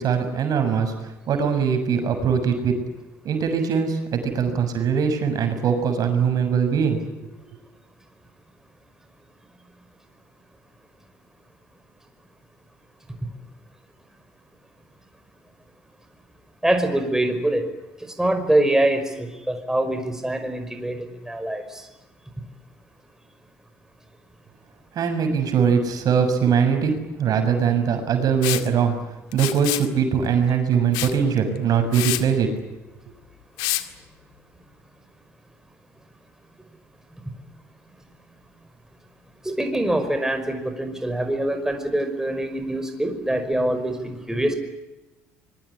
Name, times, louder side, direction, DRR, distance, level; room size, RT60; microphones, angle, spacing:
voice 1, 0.0-2.8 3.2-7.3 24.9-28.9 29.3-32.5, right 6 dB, 55° right, 7 dB, 6.8 m, -22 dB
voice 2, 16.6-17.7 18.2-21.9 39.4-44.6, right 1 dB, 5° right, 6 dB, 5.4 m, -24 dB
Liquid, 28.4-28.7 29.3-29.9 30.9-31.2 31.6-31.7 31.9-32.2 33.6-33.8, left 18 dB, 75° left, 2.1 m, -26 dB
25.0 x 23.0 x 9.8 m, 1.0 s
hypercardioid pair, 65°, 8 cm